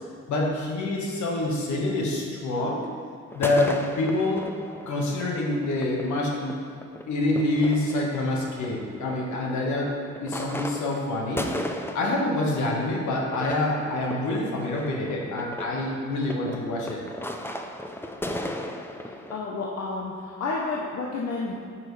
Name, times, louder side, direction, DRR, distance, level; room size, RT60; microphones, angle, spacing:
voice 1, 0.3-2.8 3.3-4.5 4.9-6.5 7.1-9.9 10.2-11.5 11.9-17.0, left 2 dB, 75° left, -1 dB, 1.6 m, -26 dB
sound 1, 3.3-19.4, left 1 dB, 10° left, 0.5 m, -37 dB
voice 2, 19.3-21.6, left 3 dB, 60° left, -3 dB, 0.9 m, -30 dB
8.5 x 6.1 x 3.3 m, 2.1 s
cardioid pair, 90°, 30 cm